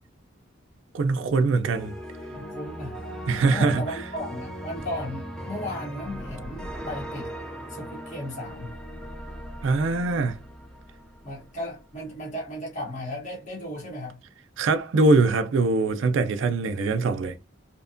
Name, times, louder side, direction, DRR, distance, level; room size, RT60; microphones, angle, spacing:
voice 1, 0.9-2.0 3.3-3.8 9.6-10.4 14.6-17.4, right 3 dB, 70° right, 0.4 m, -22 dB
sound 1, 1.7-11.8, equal, 5° left, 0.4 m, -39 dB
voice 2, 2.3-3.0 3.5-7.3 7.7-8.7 11.2-14.2, left 1 dB, 40° left, 0.9 m, -35 dB
2.8 x 2.1 x 2.5 m
head